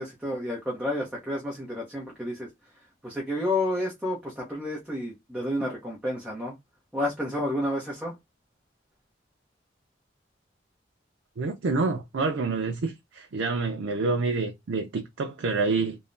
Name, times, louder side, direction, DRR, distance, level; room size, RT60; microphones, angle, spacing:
voice 1, 0.0-2.5 3.0-6.6 6.9-8.1, left 1 dB, 5° right, 0.7 m, -30 dB
voice 2, 11.4-16.0, right 3 dB, 85° right, 0.5 m, -27 dB
3.1 x 2.1 x 2.4 m
head